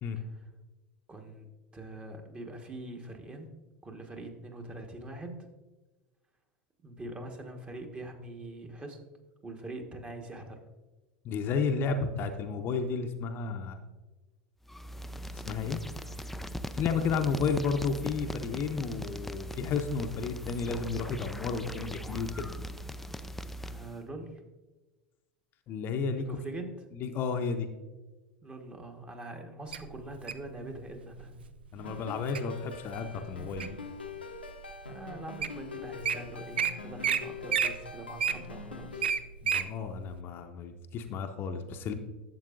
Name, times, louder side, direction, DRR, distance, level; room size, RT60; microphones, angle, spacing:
voice 1, 1.1-1.5 1.7-3.5 3.8-5.5 6.8-9.0 9.4-10.6 23.6-24.4 26.2-26.8 28.4-31.4 34.9-39.1, right 1 dB, 20° right, 3 dB, 1.3 m, -43 dB
voice 2, 11.2-13.8 15.3-15.8 16.7-22.5 25.7-26.3 27.0-27.7 31.7-33.8 39.4-41.9, left 5 dB, 40° left, 6 dB, 0.7 m, -32 dB
sound 1, 14.6-24.1, equal, 5° left, 0.3 m, -40 dB
Wild animals, 29.7-30.5 31.2-31.5 32.0-32.4 32.9-33.9 34.5-34.6 35.1-35.2 35.4-35.6 35.8-36.1 36.6-36.7 37.0-37.2 37.5-39.7 40.1-40.2, right 7 dB, 75° right, 0.5 m, -29 dB
sound 2, 31.8-39.1, left 4 dB, 90° left, 0.8 m, -44 dB
11.5 x 7.5 x 2.5 m, 1.2 s
figure-of-eight pair, 80°, 5 cm